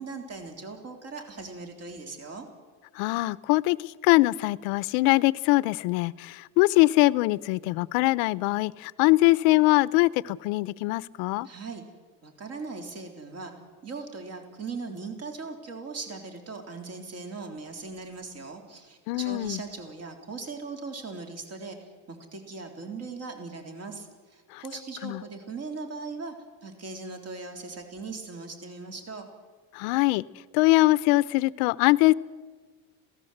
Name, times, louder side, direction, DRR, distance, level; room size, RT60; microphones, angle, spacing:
voice 1, 0.0-2.5 11.4-11.8 12.2-13.5 13.8-26.3 26.6-29.3, right 4 dB, 35° right, 4 dB, 3.6 m, -39 dB
voice 2, 2.9-11.5 19.1-19.6 24.5-24.6 25.0-25.2 29.7-30.2 30.5-32.1, left 21 dB, 80° left, 19 dB, 0.8 m, -22 dB
26.5 x 17.5 x 8.0 m, 1.4 s
cardioid pair, 165°, 41 cm